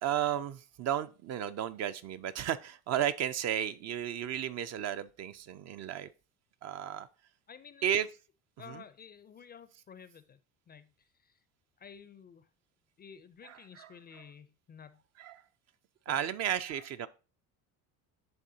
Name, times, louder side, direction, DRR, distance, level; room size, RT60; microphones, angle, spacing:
voice 1, 0.0-6.1 6.6-7.1 7.8-8.1 8.7-8.8 13.4-13.9 15.2-15.4 16.1-17.1, right 10 dB, 45° right, 0.4 m, -33 dB
voice 2, 7.5-7.9 8.6-10.4 10.7-11.4 11.8-12.5 13.0-15.0 16.1-16.2, left 7 dB, 25° left, 0.4 m, -52 dB
10.5 x 3.5 x 2.7 m
supercardioid pair, 85°, 39 cm